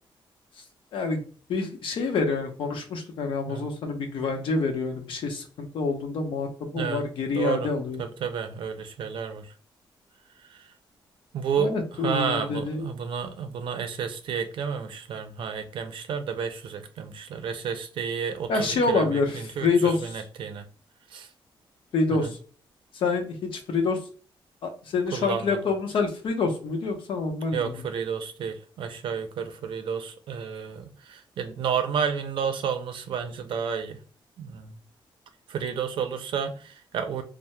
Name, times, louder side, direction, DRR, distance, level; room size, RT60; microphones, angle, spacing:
voice 1, 0.9-1.2 1.5-8.0 11.6-12.9 18.5-20.2 21.9-22.3 22.9-24.0 24.6-27.7, left 4 dB, 75° left, 4 dB, 0.7 m, -27 dB
voice 2, 7.3-7.7 8.0-9.5 10.5-10.7 11.3-20.6 21.1-21.3 22.1-22.3 25.1-25.7 27.5-34.0 34.4-34.8 35.5-37.2, right 7 dB, 70° right, 7 dB, 0.5 m, -31 dB
2.7 x 2.0 x 3.2 m, 0.41 s
wide cardioid pair, 165°, 9 cm